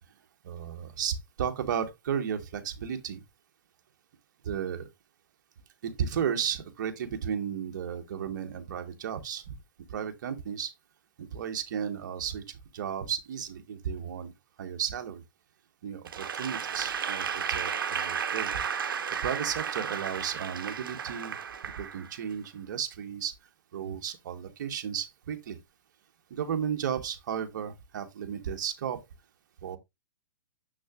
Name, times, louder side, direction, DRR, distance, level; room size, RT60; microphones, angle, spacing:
voice 1, 0.4-3.2 4.4-4.9 5.8-9.6 9.9-10.7 11.2-14.3 14.6-15.2 15.8-18.5 19.2-21.4 21.6-23.3 23.7-25.6 26.3-29.0 29.6-29.8, right 8 dB, 55° right, 1.2 m, -34 dB
Applause / Crowd, 16.1-22.3, right 7 dB, 80° right, 0.8 m, -33 dB
6.8 x 6.2 x 2.4 m
hypercardioid pair, 155°, 11 cm